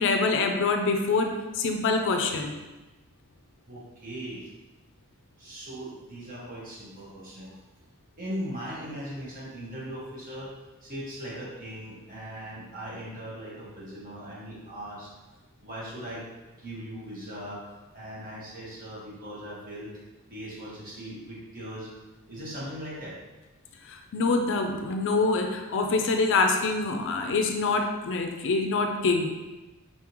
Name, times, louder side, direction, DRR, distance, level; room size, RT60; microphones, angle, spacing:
voice 1, 0.0-2.6 23.8-29.3, left 3 dB, 55° left, 5 dB, 0.4 m, -25 dB
voice 2, 3.7-4.5 5.4-7.6 8.2-10.5 10.8-15.1 15.6-16.2 16.6-17.6 17.9-19.9 20.3-21.9 22.3-23.2, equal, 40° right, -7 dB, 1.5 m, -39 dB
4.1 x 3.6 x 3.0 m, 1.1 s
head